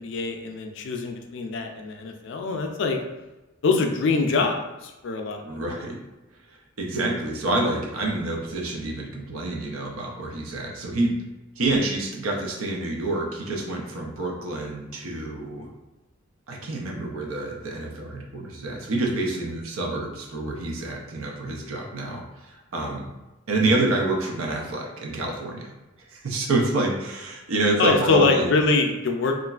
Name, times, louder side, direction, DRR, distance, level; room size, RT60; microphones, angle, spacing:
voice 1, 0.0-3.0 3.6-5.6 27.8-29.3, left 4 dB, 60° left, 3 dB, 0.4 m, -24 dB
voice 2, 5.4-6.0 6.5-11.2 11.6-15.7 16.5-23.1 23.5-25.7 26.1-28.5, right 2 dB, 85° right, 0 dB, 0.6 m, -27 dB
3.0 x 2.4 x 2.3 m, 1.1 s
head